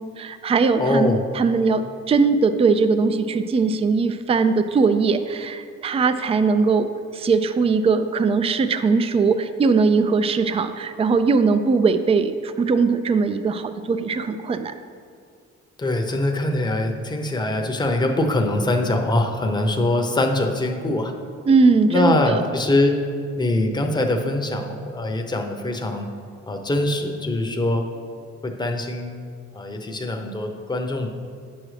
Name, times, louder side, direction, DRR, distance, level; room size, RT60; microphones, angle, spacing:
voice 1, 0.2-6.9 7.1-14.7 21.5-22.5, right 4 dB, 20° right, 10 dB, 0.3 m, -20 dB
voice 2, 0.8-1.3 15.8-21.1 21.9-23.0 23.4-26.1 26.5-27.8 28.4-29.1 29.5-31.1, left 2 dB, 15° left, 3 dB, 0.7 m, -23 dB
8.5 x 6.3 x 3.2 m, 2.3 s
cardioid pair, 90°, 30 cm